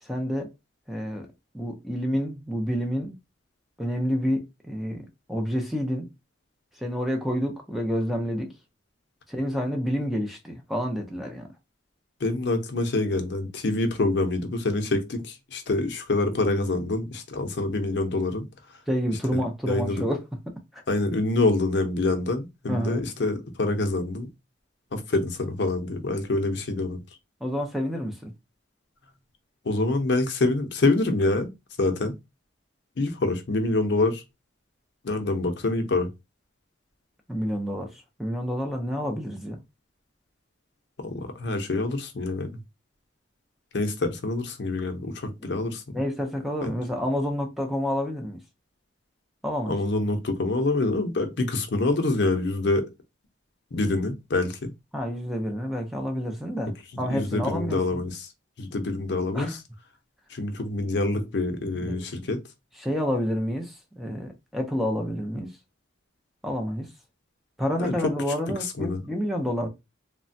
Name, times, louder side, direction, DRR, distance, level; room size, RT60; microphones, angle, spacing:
voice 1, 0.0-0.5 0.9-1.3 1.5-3.2 3.8-6.1 6.8-8.5 9.3-11.5 18.9-20.2 20.5-20.8 22.7-23.0 27.4-28.3 37.3-39.6 45.4-45.5 45.9-48.4 49.4-49.8 54.9-58.1 59.3-59.6 61.7-62.2 62.8-65.5 66.4-66.9 67.6-69.7, equal, ahead, 0.4 m, -29 dB
voice 2, 12.2-18.4 19.3-19.4 19.7-20.0 20.9-24.3 24.9-27.0 29.6-31.5 31.8-32.1 33.0-34.2 35.0-36.1 41.0-42.5 43.7-46.0 46.6-46.7 49.7-52.9 53.7-54.7 56.9-58.3 58.6-59.6 60.3-62.4 67.8-67.9 68.6-69.0, left 2 dB, 60° left, 0.6 m, -26 dB
3.1 x 2.1 x 2.6 m
head